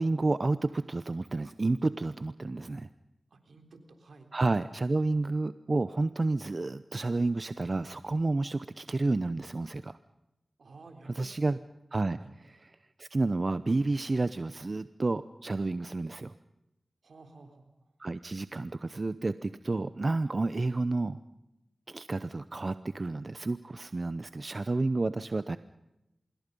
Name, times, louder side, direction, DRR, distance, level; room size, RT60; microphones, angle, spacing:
voice 1, 0.0-2.9 4.3-10.0 11.1-11.6 11.9-16.3 18.0-21.2 21.9-25.6, right 2 dB, 50° right, 13 dB, 0.8 m, -30 dB
voice 2, 3.3-4.3 10.6-11.5 12.2-12.3 17.0-17.7, right 3 dB, 80° right, 6 dB, 3.6 m, -52 dB
26.0 x 22.0 x 5.4 m, 0.92 s
cardioid pair, 40°, 0 cm